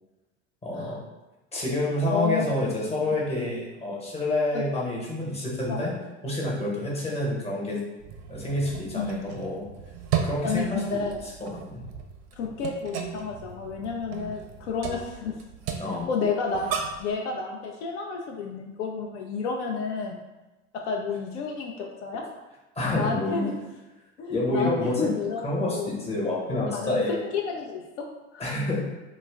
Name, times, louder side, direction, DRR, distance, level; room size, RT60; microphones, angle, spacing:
voice 1, 0.6-1.0 1.5-5.9 6.2-7.8 8.3-9.6 10.2-11.0 11.5-11.8 15.8-16.1 22.8-23.5 24.3-25.1 25.4-27.1 28.4-28.8, left 1 dB, 15° left, -4 dB, 0.9 m, -28 dB
voice 2, 2.0-2.5 4.5-4.6 5.7-5.9 8.9-9.3 10.4-11.1 12.4-15.3 16.1-16.7 17.0-20.2 20.8-22.2 22.9-23.6 24.2-25.9 26.5-27.0 27.3-28.0 28.3-28.6, left 5 dB, 70° left, 0 dB, 0.5 m, -31 dB
sound 1, 8.0-17.1, right 7 dB, 45° right, 0.5 m, -35 dB
2.2 x 2.1 x 3.5 m, 1.1 s
hypercardioid pair, 80°, 35 cm